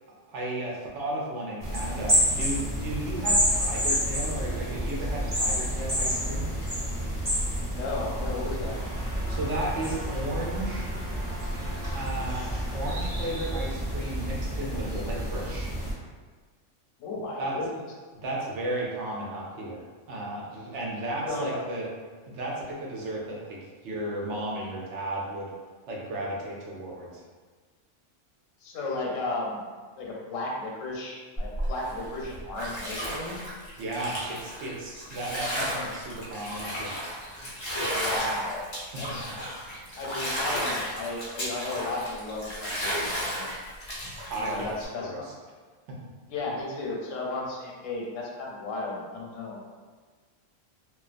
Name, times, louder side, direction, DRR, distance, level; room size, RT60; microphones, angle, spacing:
voice 1, 0.3-6.5 9.3-10.9 11.9-12.5 12.7-15.7 17.4-17.5 18.1-21.9 22.3-23.6 23.8-25.5 25.9-27.2 33.8-36.9 38.9-39.0 44.3-44.7 45.0-45.3 45.9-46.0, right 1 dB, 70° right, -4 dB, 0.8 m, -34 dB
sound 1, 1.6-15.9, equal, 25° right, 0.5 m, -29 dB
voice 2, 7.7-8.8 17.0-17.7 21.3-21.6 28.6-29.6 30.0-33.4 37.8-38.6 39.0-39.3 40.0-43.5 44.4-45.3 46.3-49.6, left 2 dB, 85° left, -2 dB, 1.0 m, -34 dB
Bathtub (filling or washing), 31.4-44.9, equal, 45° left, 0.3 m, -34 dB
2.3 x 2.2 x 2.4 m, 1.4 s
omnidirectional pair, 1.3 m